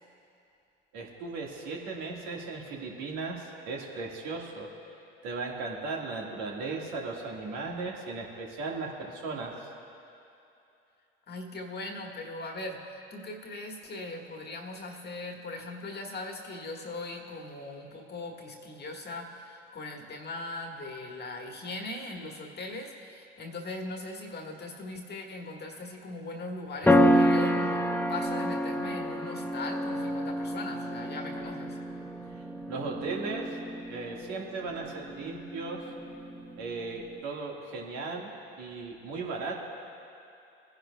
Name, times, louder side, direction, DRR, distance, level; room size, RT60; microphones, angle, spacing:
voice 1, 0.9-4.7 5.2-9.7 32.7-33.6 33.9-35.9 36.6-39.6, right 3 dB, 70° right, -1 dB, 1.7 m, -36 dB
voice 2, 11.3-27.8 28.1-31.8, left 2 dB, 35° left, 1 dB, 1.5 m, -40 dB
sound 1, 26.8-37.2, equal, 5° left, 0.7 m, -29 dB
19.5 x 10.5 x 2.2 m, 2.7 s
hypercardioid pair, 65°, 30 cm